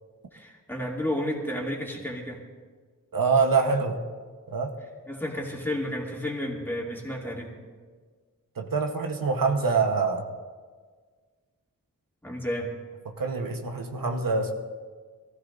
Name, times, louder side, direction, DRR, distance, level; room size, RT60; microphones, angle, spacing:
voice 1, 0.3-2.4 5.1-7.5 12.2-12.7, left 1 dB, 5° left, -3 dB, 2.7 m, -31 dB
voice 2, 3.1-4.0 4.5-4.7 8.6-10.2 13.1-14.5, right 4 dB, 85° right, 3 dB, 1.2 m, -25 dB
23.5 x 15.0 x 2.7 m, 1.5 s
wide cardioid pair, 105°, 33 cm